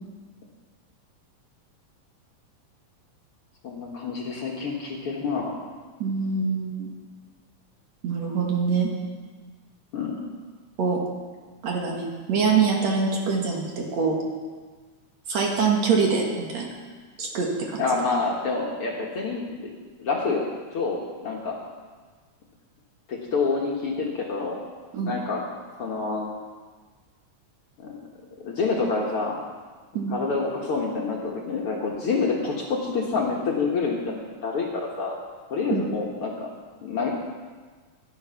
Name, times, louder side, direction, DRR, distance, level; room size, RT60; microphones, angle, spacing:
voice 1, 3.6-5.6 9.9-10.2 17.8-19.7 20.0-21.6 23.1-24.6 25.1-25.5 25.8-26.3 27.8-28.0 28.4-29.4 30.1-35.2 35.5-36.5 36.8-37.1, left 4 dB, 55° left, -2 dB, 1.9 m, -27 dB
voice 2, 6.0-6.9 8.0-8.9 10.8-11.0 11.6-14.2 15.3-16.7 17.2-17.8 24.9-25.2 29.9-30.2 35.7-35.9, right 5 dB, 60° right, 0 dB, 2.7 m, -24 dB
14.0 x 11.0 x 5.8 m, 1.5 s
omnidirectional pair, 3.7 m